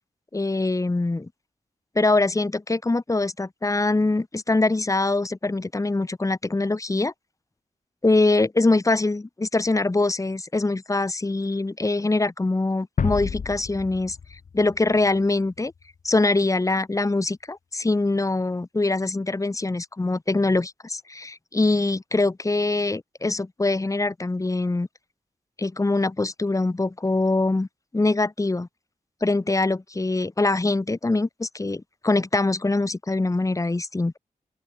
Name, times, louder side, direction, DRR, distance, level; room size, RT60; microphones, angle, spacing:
voice 1, 0.3-1.3 1.9-7.1 8.0-15.7 16.0-24.9 25.6-27.7 27.9-28.7 29.2-34.1, left 2 dB, 25° left, 1.5 m, -23 dB
sound 1, 13.0-15.8, left 6 dB, 75° left, 2.6 m, -31 dB
open air
wide cardioid pair, 95°, 13 cm